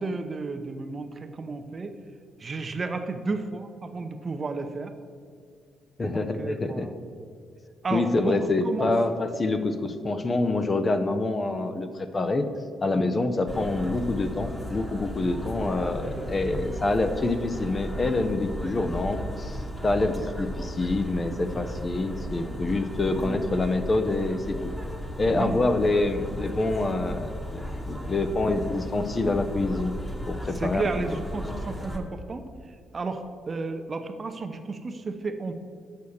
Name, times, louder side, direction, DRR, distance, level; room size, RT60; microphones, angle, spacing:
voice 1, 0.0-1.9 2.4-4.9 6.0-6.9 7.8-8.9 12.9-13.0 21.5-21.6 23.0-23.4 25.3-25.6 30.6-32.5 32.9-35.5, right 3 dB, 35° right, 7 dB, 0.7 m, -32 dB
voice 2, 6.0-7.0 7.9-12.5 12.8-24.6 25.2-27.6 27.9-29.9 30.3-30.9, left 2 dB, 30° left, 8 dB, 0.6 m, -26 dB
sound 1, 13.5-32.0, equal, 5° left, 1.3 m, -35 dB
6.6 x 6.3 x 7.0 m, 2.2 s
cardioid pair, 90°, 0 cm